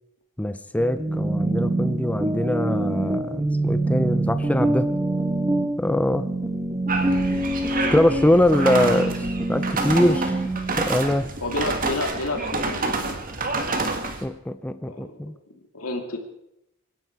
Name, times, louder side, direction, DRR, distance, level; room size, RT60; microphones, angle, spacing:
voice 1, 0.4-4.9 5.8-6.2 7.9-10.4 10.8-11.3 14.2-15.3, left 1 dB, 5° left, 11 dB, 0.5 m, -22 dB
sound 1, 0.8-10.7, right 2 dB, 15° right, 1.0 m, -25 dB
sound 2, 6.9-14.2, right 3 dB, 40° right, 2.0 m, -28 dB
voice 2, 11.4-13.2 14.8-16.2, left 2 dB, 85° left, 4 dB, 2.6 m, -31 dB
25.0 x 11.0 x 4.6 m, 0.84 s
head